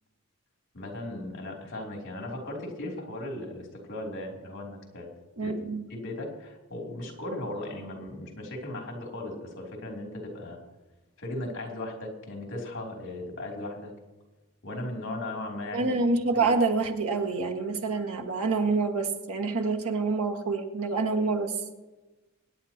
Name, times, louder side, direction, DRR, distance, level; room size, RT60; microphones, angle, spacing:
voice 1, 0.7-5.1 5.4-5.5 5.9-10.6 11.2-13.9 14.6-16.0 16.3-16.5, left 1 dB, 60° left, 0 dB, 3.2 m, -37 dB
voice 2, 5.4-5.8 15.7-21.5, right 3 dB, 80° right, 2 dB, 1.7 m, -27 dB
24.5 x 10.0 x 2.9 m, 1.1 s
head